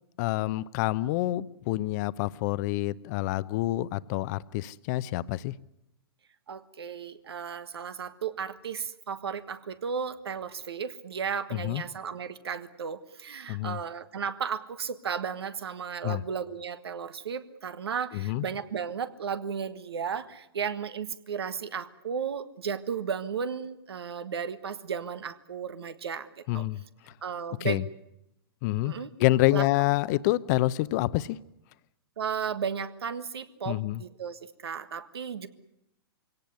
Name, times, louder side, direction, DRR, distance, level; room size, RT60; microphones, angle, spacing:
voice 1, 0.2-5.5 11.5-11.8 13.5-13.8 16.0-16.2 18.1-18.4 26.5-26.8 27.6-27.8 28.6-28.9 29.2-31.4 33.7-34.0, left 17 dB, 45° left, 17 dB, 0.8 m, -27 dB
voice 2, 6.5-26.3 26.5-26.6 27.2-27.8 28.8-29.1 29.5-29.7 32.2-35.5, right 6 dB, 80° right, 12 dB, 1.6 m, -34 dB
23.5 x 17.5 x 9.7 m, 0.85 s
hypercardioid pair, 120°, 13 cm